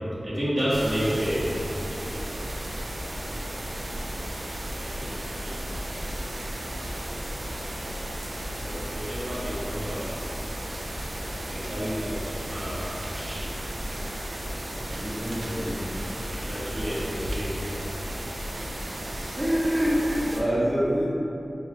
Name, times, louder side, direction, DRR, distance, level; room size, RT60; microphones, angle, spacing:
voice 1, 0.2-1.5 1.8-2.2 4.9-5.6 8.4-10.1 11.5-13.5 16.5-18.3 18.7-18.8, equal, 55° right, -11 dB, 1.2 m, -31 dB
sound 1, 0.7-20.4, right 1 dB, 85° right, 0.4 m, -34 dB
voice 2, 14.9-15.8 19.4-21.1, equal, 20° right, -11 dB, 0.7 m, -25 dB
4.4 x 2.3 x 3.0 m, 2.8 s
wide cardioid pair, 75°, 0 cm